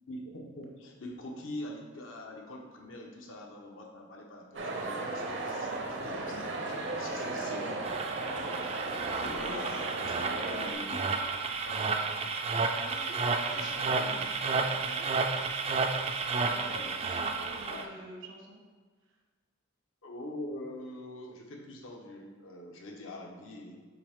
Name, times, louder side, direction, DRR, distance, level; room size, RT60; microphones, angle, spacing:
voice 1, 0.1-11.0 11.6-12.0 13.4-14.2 14.5-14.8 15.7-16.1 16.6-17.0 17.3-17.9 20.0-23.8, left 1 dB, 85° left, 0 dB, 1.0 m, -44 dB
sound 1, 4.5-10.7, right 2 dB, 60° right, 0.7 m, -36 dB
sound 2, 7.8-17.8, right 4 dB, 30° right, 0.3 m, -32 dB
voice 2, 12.7-13.7 14.8-15.1 16.4-18.6, right 1 dB, 80° right, 0 dB, 1.3 m, -48 dB
5.8 x 4.6 x 3.6 m, 1.4 s
head